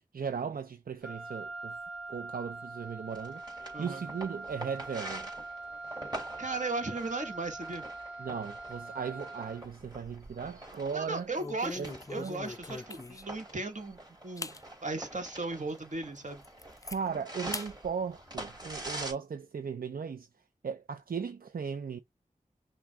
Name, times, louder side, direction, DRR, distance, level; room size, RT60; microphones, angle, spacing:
voice 1, 0.0-1.8 2.1-3.4 3.8-5.3 8.2-11.3 11.8-12.4 16.9-20.3 20.6-22.0, right 6 dB, 85° right, 0.5 m, -37 dB
Wind instrument woodwind instrument, 1.0-9.7, right 3 dB, 5° right, 1.3 m, -43 dB
sound 1, 3.1-19.1, right 1 dB, 30° right, 2.8 m, -45 dB
voice 2, 3.7-4.0 6.4-7.8 10.9-14.6 14.8-16.4, right 3 dB, 60° right, 1.5 m, -36 dB
sound 2, 9.5-10.2 10.6-10.8 11.4-13.4 13.9-14.0 14.4-14.6 15.1-15.2 15.7-15.8 16.2-17.0 17.5-17.7 18.1-19.0, left 3 dB, 25° left, 0.3 m, -42 dB
5.9 x 2.3 x 3.5 m
wide cardioid pair, 70°, 15 cm